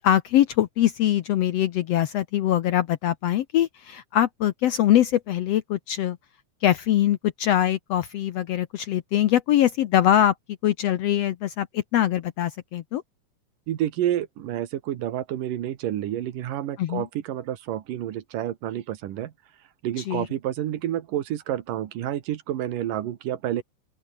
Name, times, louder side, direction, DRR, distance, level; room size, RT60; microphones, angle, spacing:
voice 1, 0.0-6.2 6.6-10.3 10.6-13.0 16.8-17.1 20.1-20.3, left 11 dB, 70° left, 1.6 m, -23 dB
voice 2, 13.7-19.3 19.8-23.6, right 12 dB, 90° right, 3.1 m, -29 dB
open air
omnidirectional pair, 3.7 m